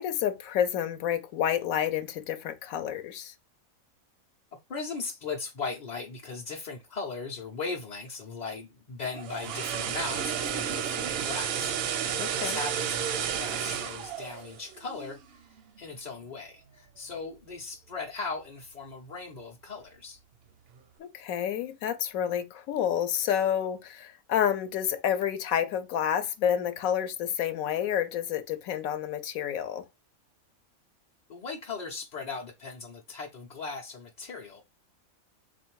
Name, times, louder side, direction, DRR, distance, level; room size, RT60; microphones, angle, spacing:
voice 1, 0.0-3.3 12.2-12.6 21.0-29.8, left 9 dB, 80° left, 1.0 m, -29 dB
voice 2, 4.7-20.2 31.3-34.6, left 4 dB, 45° left, 0.5 m, -38 dB
sound 1, 9.0-15.2 15.6-15.8, right 8 dB, 65° right, 0.6 m, -32 dB
3.5 x 2.5 x 4.5 m
omnidirectional pair, 1.5 m